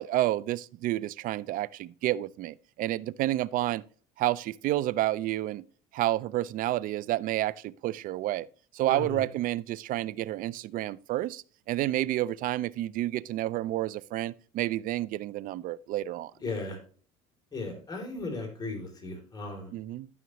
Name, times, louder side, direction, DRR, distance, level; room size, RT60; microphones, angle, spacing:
voice 1, 0.0-3.8 4.2-5.6 5.9-8.5 8.7-16.3 19.7-20.1, right 15 dB, 55° right, 0.4 m, -30 dB
voice 2, 8.8-9.2 16.4-16.8 17.5-19.7, left 3 dB, 25° left, 3.2 m, -36 dB
13.0 x 5.8 x 3.0 m
supercardioid pair, 95°, 17 cm